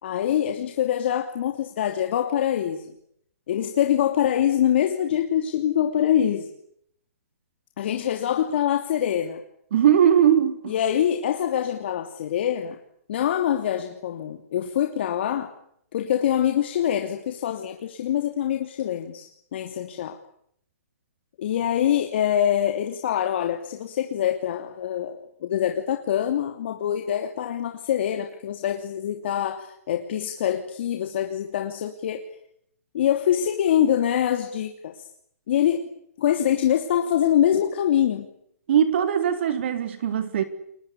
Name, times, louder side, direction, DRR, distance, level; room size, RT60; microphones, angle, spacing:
voice 1, 0.0-2.8 3.5-6.5 7.8-9.4 10.7-12.8 13.1-15.5 15.9-20.2 21.4-32.2 32.9-34.9 35.5-35.8 36.2-38.3, left 10 dB, 45° left, 2.9 m, -24 dB
voice 2, 9.7-10.7 38.7-40.4, right 9 dB, 45° right, 3.8 m, -20 dB
30.0 x 22.0 x 8.5 m
hypercardioid pair, 170°, 8 cm